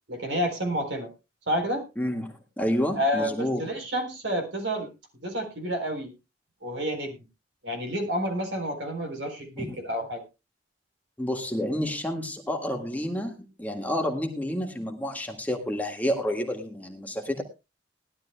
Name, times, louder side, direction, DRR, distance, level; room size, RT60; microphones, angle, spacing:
voice 1, 0.1-1.1 1.5-1.8 3.0-4.9 5.2-6.1 6.6-7.2 7.6-10.2, equal, 70° right, 5 dB, 3.9 m, -29 dB
voice 2, 2.0-3.6 9.6-9.8 11.2-17.4, left 1 dB, 10° left, 3 dB, 1.7 m, -29 dB
19.5 x 12.0 x 2.2 m, 0.26 s
head